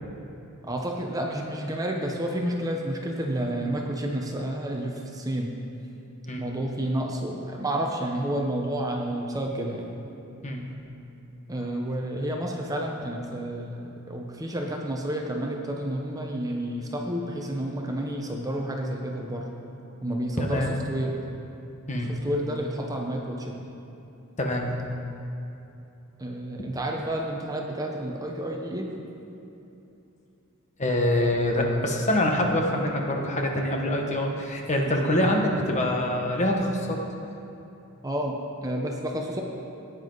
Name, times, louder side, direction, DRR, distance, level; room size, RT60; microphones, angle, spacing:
voice 1, 0.6-5.6 6.4-9.9 11.5-19.5 20.0-21.1 22.0-23.6 26.2-28.9 35.0-35.3 38.0-39.4, right 1 dB, 15° right, 1 dB, 0.9 m, -30 dB
voice 2, 20.4-20.7 21.9-22.1 24.4-24.7 30.8-37.0, left 1 dB, 35° left, 1 dB, 1.3 m, -25 dB
16.5 x 9.5 x 4.0 m, 2.9 s
head